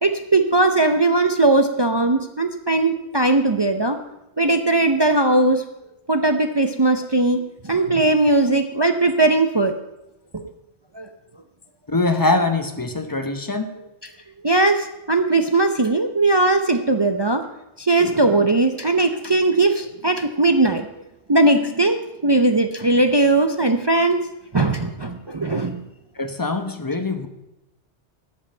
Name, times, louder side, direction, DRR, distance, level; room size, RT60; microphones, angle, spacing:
voice 1, 0.0-4.0 4.4-5.6 6.1-7.4 7.7-9.7 10.3-10.4 11.0-11.1 14.4-17.4 17.8-20.9 21.3-22.0 22.2-24.2 24.5-25.8, right 2 dB, 30° right, 7 dB, 0.5 m, -19 dB
voice 2, 11.9-13.7 26.2-27.3, left 2 dB, 20° left, 8 dB, 0.9 m, -23 dB
12.5 x 5.5 x 8.7 m, 0.92 s
omnidirectional pair, 1.2 m